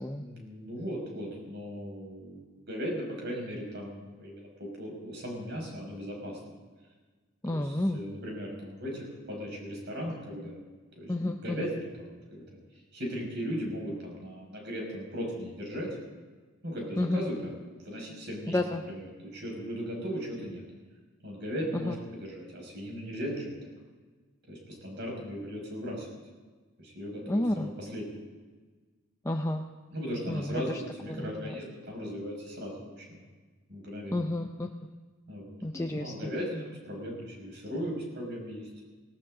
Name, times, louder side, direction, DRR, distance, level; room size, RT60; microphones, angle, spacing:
voice 1, 0.1-6.4 7.5-10.6 11.0-11.1 11.4-11.9 12.3-12.4 12.9-15.9 16.6-17.5 17.8-20.6 21.2-23.5 24.5-26.1 26.8-28.1 29.9-33.2 33.7-34.2 35.3-38.7, equal, 55° right, -1 dB, 5.9 m, -37 dB
voice 2, 7.4-8.0 11.1-11.7 17.0-17.2 18.5-18.8 21.8-21.9 27.3-27.7 29.2-29.6 30.3-30.8 31.1-31.5 34.1-34.7 35.6-36.1, left 1 dB, 15° left, 3 dB, 0.6 m, -30 dB
19.5 x 18.0 x 3.9 m, 1.3 s
head